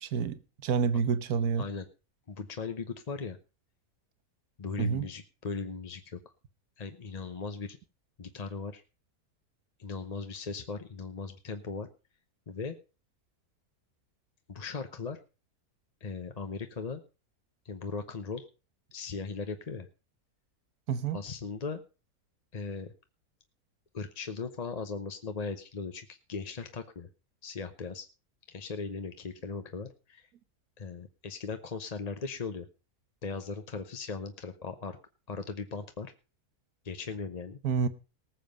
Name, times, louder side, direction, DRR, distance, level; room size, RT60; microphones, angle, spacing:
voice 1, 0.0-1.6 4.8-5.1 20.9-21.2 37.6-37.9, right 6 dB, 85° right, 1.4 m, -28 dB
voice 2, 2.3-3.4 4.6-6.2 6.8-7.8 8.2-8.8 9.8-11.9 12.5-12.8 14.5-15.2 16.0-17.0 17.6-18.5 18.9-19.9 21.1-21.8 22.5-22.9 23.9-27.1 27.4-28.1 28.5-30.3 30.8-32.7 33.2-35.0 35.3-36.1 36.8-37.6, left 4 dB, 35° left, 0.8 m, -38 dB
19.0 x 7.4 x 5.2 m
omnidirectional pair, 1.6 m